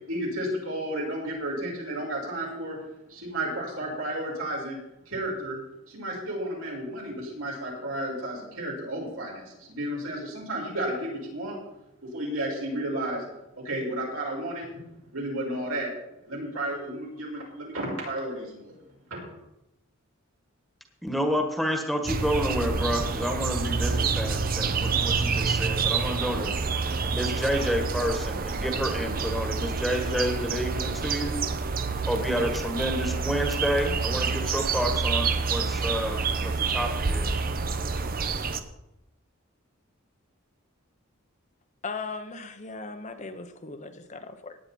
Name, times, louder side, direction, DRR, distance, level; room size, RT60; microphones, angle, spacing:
voice 1, 0.1-2.8 3.1-4.8 5.1-5.6 5.9-11.6 12.0-13.2 13.6-15.9 16.3-18.7 19.1-19.4, right 1 dB, 80° right, 5.8 m, -32 dB
voice 2, 21.0-26.5 27.1-31.4 32.1-37.3, equal, ahead, 1.5 m, -29 dB
sound 1, 22.0-38.6, right 4 dB, 45° right, 0.9 m, -28 dB
voice 3, 41.8-44.6, left 4 dB, 35° left, 0.9 m, -38 dB
17.5 x 9.7 x 4.3 m
head